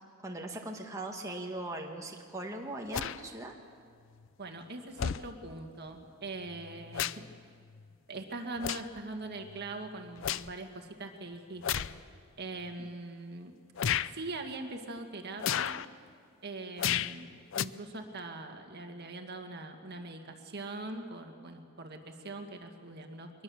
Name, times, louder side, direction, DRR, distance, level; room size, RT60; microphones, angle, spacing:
voice 1, 0.2-3.5 12.8-12.9, right 1 dB, 15° right, 0 dB, 1.4 m, -40 dB
sound 1, 2.9-3.2 4.2-4.3 5.0-5.3 6.5-7.3 7.7-7.9 8.6-9.0 9.5-10.5 11.6-12.0 12.7-12.8 13.8-14.1 15.4-15.9 16.8-17.2 17.5-17.7, left 9 dB, 65° left, 0.5 m, -33 dB
voice 2, 4.4-7.2 8.1-11.9 12.4-13.5 14.1-15.8 16.4-17.3 17.5-23.3, right 2 dB, 50° right, 4 dB, 1.9 m, -42 dB
22.5 x 21.0 x 7.2 m, 2.2 s
head